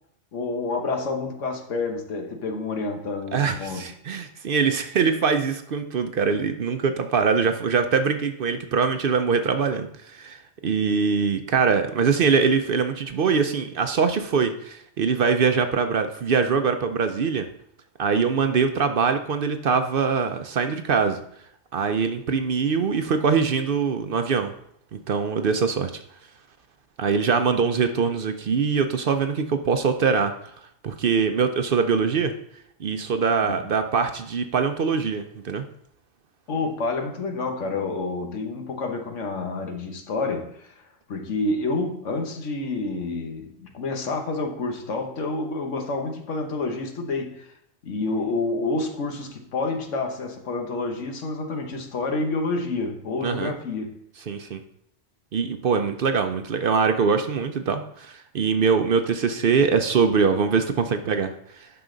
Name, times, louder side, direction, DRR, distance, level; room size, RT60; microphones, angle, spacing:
voice 1, 0.3-3.9 33.5-33.6 36.5-40.7 41.1-47.5 47.8-54.0, left 3 dB, 85° left, 4 dB, 1.5 m, -28 dB
voice 2, 3.3-17.5 18.0-21.2 21.7-24.5 25.1-25.9 27.0-30.3 30.8-32.3 32.8-35.7 53.2-53.6 54.3-54.6 55.3-61.7, right 5 dB, 55° right, 8 dB, 0.7 m, -23 dB
9.5 x 6.0 x 3.8 m, 0.70 s
omnidirectional pair, 1.2 m